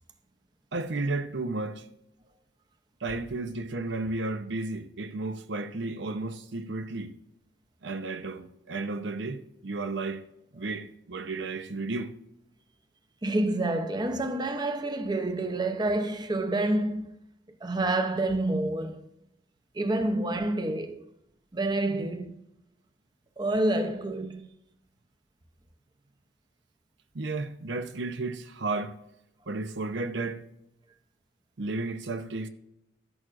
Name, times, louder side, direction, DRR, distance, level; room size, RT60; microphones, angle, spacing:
voice 1, 0.7-1.9 3.0-7.1 7.8-10.2 10.5-12.1 27.1-29.0 29.5-30.4 31.6-32.5, right 3 dB, 75° right, 0.7 m, -33 dB
voice 2, 13.2-17.1 17.6-19.0 19.7-21.0 21.5-22.4 23.4-24.5, right 2 dB, 25° right, 0.7 m, -28 dB
12.5 x 11.0 x 2.5 m
head